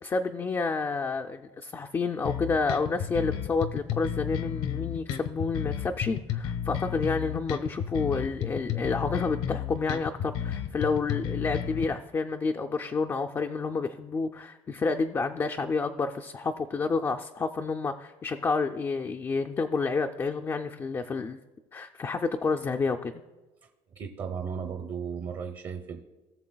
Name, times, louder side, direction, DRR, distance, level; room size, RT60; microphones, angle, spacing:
voice 1, 0.0-21.4 21.7-23.1, left 4 dB, 20° left, 5 dB, 0.3 m, -29 dB
sound 1, 2.2-11.8, left 9 dB, 80° left, 0.9 m, -32 dB
voice 2, 24.0-26.0, right 6 dB, 40° right, 4 dB, 0.7 m, -35 dB
18.0 x 6.8 x 2.3 m, 1.2 s
cardioid pair, 140°, 12 cm